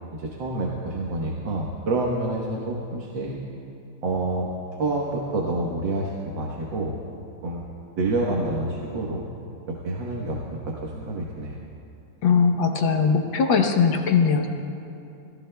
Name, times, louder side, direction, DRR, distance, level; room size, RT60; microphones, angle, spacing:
voice 1, 0.1-3.4 4.0-4.5 4.8-7.0 7.4-7.6 8.0-9.3 9.7-10.4 10.7-11.6, right 2 dB, 70° right, -2 dB, 2.0 m, -28 dB
voice 2, 12.2-14.5, left 5 dB, 75° left, 4 dB, 1.8 m, -20 dB
29.5 x 18.0 x 2.3 m, 2.7 s
omnidirectional pair, 2.2 m